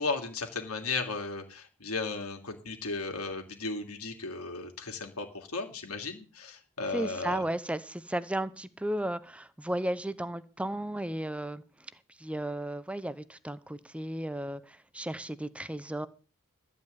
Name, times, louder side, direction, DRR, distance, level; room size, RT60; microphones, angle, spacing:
voice 1, 0.0-7.4, left 3 dB, 80° left, 4 dB, 2.8 m, -35 dB
voice 2, 6.9-11.9 12.2-16.1, right 1 dB, 5° right, 14 dB, 0.7 m, -34 dB
13.5 x 5.4 x 9.4 m, 0.36 s
head